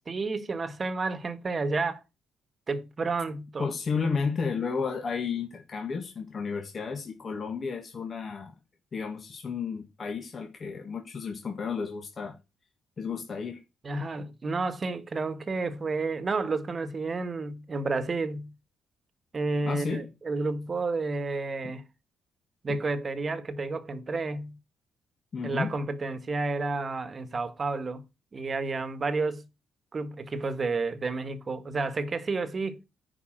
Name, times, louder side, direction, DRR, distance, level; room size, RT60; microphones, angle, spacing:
voice 1, 0.1-2.0 2.7-3.7 13.8-18.5 19.3-21.9 22.6-24.6 25.4-28.0 28.3-29.5 29.9-32.8, right 3 dB, 35° right, 1.4 m, -31 dB
voice 2, 3.6-8.5 8.9-12.4 13.0-13.6 19.6-20.1 22.7-22.8 25.3-25.8, left 5 dB, 40° left, 1.7 m, -32 dB
9.8 x 4.9 x 7.5 m
cardioid pair, 90°, 0 cm